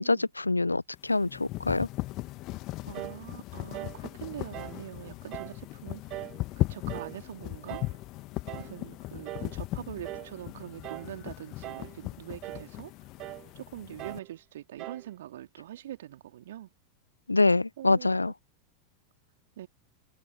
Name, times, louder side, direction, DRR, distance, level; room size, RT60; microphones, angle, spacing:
voice 1, 0.0-1.9 17.3-18.3, left 2 dB, 80° left, 0.9 m, -25 dB
sound 1, 0.9-14.2, left 19 dB, 40° left, 1.8 m, -38 dB
voice 2, 2.8-6.3 6.5-8.0 8.5-12.9 13.5-16.7 17.8-18.3 19.6-19.7, right 12 dB, 60° right, 2.6 m, -43 dB
sound 2, 2.9-3.2 3.7-4.0 4.5-4.8 5.3-5.6 6.1-6.4 6.9-7.2 7.7-8.0 8.5-8.7 9.2-9.6 10.0-10.4 10.8-11.1 11.6-12.0 12.4-12.7 13.2-13.5 14.0-14.3 14.8-15.1, right 17 dB, 35° right, 2.5 m, -41 dB
figure-of-eight pair, 90°, 0 cm